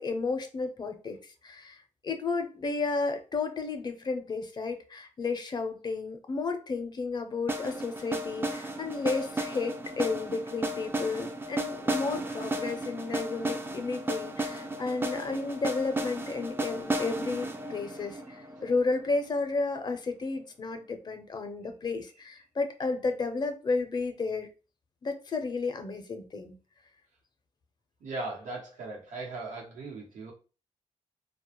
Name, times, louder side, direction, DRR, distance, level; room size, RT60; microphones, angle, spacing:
voice 1, 0.0-1.8 2.0-24.5 25.0-26.6, left 3 dB, 35° left, 7 dB, 0.5 m, -32 dB
sound 1, 7.5-19.4, right 1 dB, 20° right, 0.3 m, -34 dB
voice 2, 28.0-30.3, right 2 dB, 90° right, -1 dB, 0.9 m, -38 dB
2.2 x 2.0 x 2.9 m, 0.34 s
cardioid pair, 95°, 12 cm